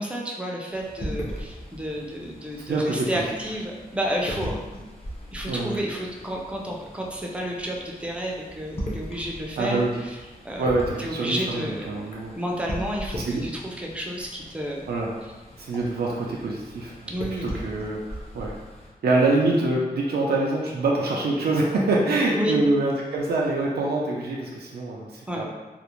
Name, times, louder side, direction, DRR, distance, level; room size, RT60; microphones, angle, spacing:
voice 1, 0.0-4.6 5.3-10.2 10.4-10.7 11.0-12.0 12.3-14.9 17.1-17.5 22.3-22.6 25.3-25.4, equal, 5° right, -1 dB, 0.4 m, -31 dB
sound 1, 0.7-18.9, equal, 40° left, 0.6 m, -39 dB
voice 2, 2.7-3.3 5.5-5.8 9.6-10.0 10.6-12.3 13.2-13.5 14.9-15.2 15.6-17.1 17.4-18.6 19.0-25.4, right 2 dB, 85° right, -3 dB, 0.4 m, -25 dB
2.5 x 2.0 x 2.9 m, 1.2 s
wide cardioid pair, 105°, 16 cm